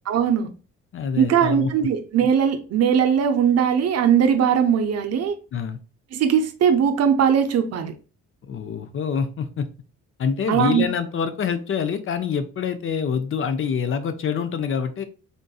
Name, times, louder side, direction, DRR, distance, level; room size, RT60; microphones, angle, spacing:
voice 1, 0.1-0.5 1.2-5.3 6.1-7.9 10.5-10.9, right 8 dB, 55° right, 0.6 m, -20 dB
voice 2, 0.9-1.7 5.5-5.8 8.5-9.7 10.2-15.0, left 6 dB, 45° left, 0.5 m, -26 dB
3.7 x 2.5 x 2.3 m
cardioid pair, 90°, 30 cm